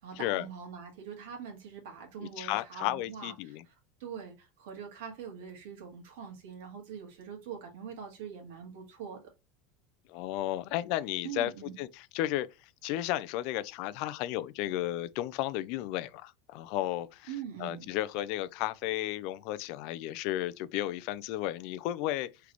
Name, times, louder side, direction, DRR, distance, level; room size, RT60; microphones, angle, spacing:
voice 1, 0.0-3.7 4.0-9.2 11.2-11.7 17.3-17.9, right 7 dB, 70° right, 1.8 m, -43 dB
voice 2, 2.2-3.6 10.1-12.5 12.8-17.3 17.6-22.3, left 14 dB, 50° left, 0.3 m, -33 dB
3.8 x 3.3 x 3.0 m
supercardioid pair, 175°, 0 cm